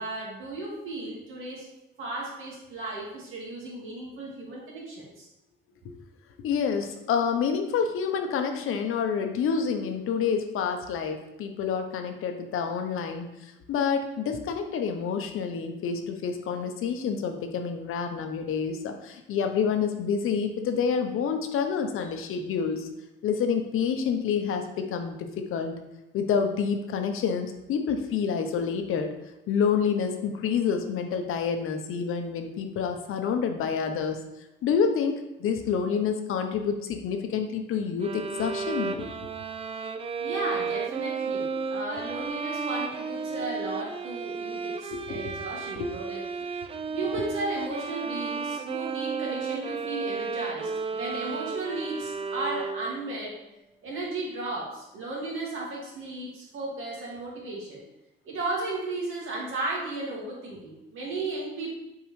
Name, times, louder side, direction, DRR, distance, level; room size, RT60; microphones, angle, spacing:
voice 1, 0.0-1.7 2.0-5.3 40.2-46.2 46.9-53.4 53.8-57.8 58.2-61.7, right 2 dB, 75° right, -3 dB, 2.1 m, -35 dB
voice 2, 6.4-22.9 23.2-25.7 26.1-29.1 29.5-34.2 34.6-39.1 44.9-45.2 45.8-45.9, left 6 dB, 90° left, 6 dB, 0.8 m, -28 dB
sound 1, 38.0-53.1, right 5 dB, 30° right, 0.4 m, -33 dB
7.2 x 4.7 x 3.2 m, 0.94 s
cardioid pair, 145°, 21 cm